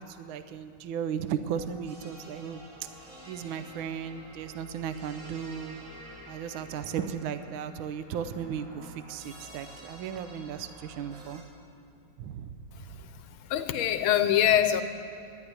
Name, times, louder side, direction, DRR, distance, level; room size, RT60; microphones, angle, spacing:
voice 1, 0.0-2.6 3.3-5.8 6.3-11.4 12.2-12.8, right 8 dB, 75° right, 11 dB, 1.4 m, -36 dB
sound 1, 1.5-11.4, equal, 55° right, 2.9 m, -49 dB
voice 2, 13.5-14.8, left 11 dB, 75° left, 10 dB, 1.5 m, -23 dB
11.0 x 10.5 x 9.5 m, 2.7 s
omnidirectional pair, 2.4 m